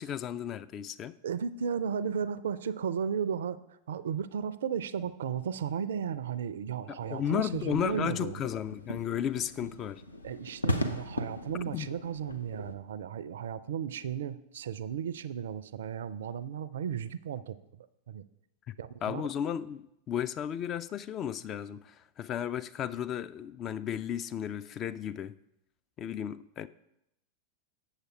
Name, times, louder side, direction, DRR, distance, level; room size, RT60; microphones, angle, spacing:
voice 1, 0.0-1.1 6.9-10.0 11.7-11.9 18.7-18.8 19.0-25.3 26.0-26.7, left 9 dB, 30° left, 0.3 m, -34 dB
voice 2, 1.2-8.4 10.2-18.2 18.8-19.3, right 7 dB, 60° right, 0.4 m, -35 dB
sound 1, 7.0-12.7, left 1 dB, 85° left, 0.6 m, -37 dB
8.0 x 6.7 x 4.4 m
figure-of-eight pair, 90°, 0 cm